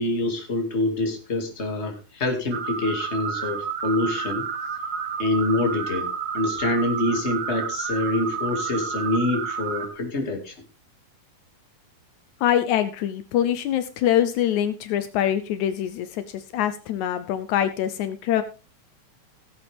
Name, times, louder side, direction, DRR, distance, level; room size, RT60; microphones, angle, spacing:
voice 1, 0.0-4.5 5.2-6.1 6.3-10.5, left 2 dB, 25° left, 3 dB, 2.4 m, -26 dB
sound 1, 2.5-9.9, right 6 dB, 50° right, 1.7 m, -30 dB
voice 2, 12.4-18.4, left 11 dB, 80° left, 11 dB, 2.1 m, -24 dB
16.5 x 8.3 x 3.5 m, 0.31 s
omnidirectional pair, 3.5 m